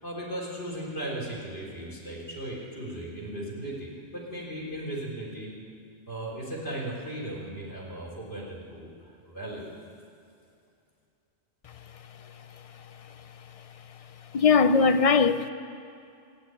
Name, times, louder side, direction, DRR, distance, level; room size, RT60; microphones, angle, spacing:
voice 1, 0.0-5.5 6.1-8.9 9.2-9.7, right 1 dB, 70° left, 3.9 m, -37 dB
voice 2, 14.3-15.5, left 5 dB, 50° left, 0.4 m, -20 dB
14.5 x 8.6 x 9.6 m
omnidirectional pair, 1.1 m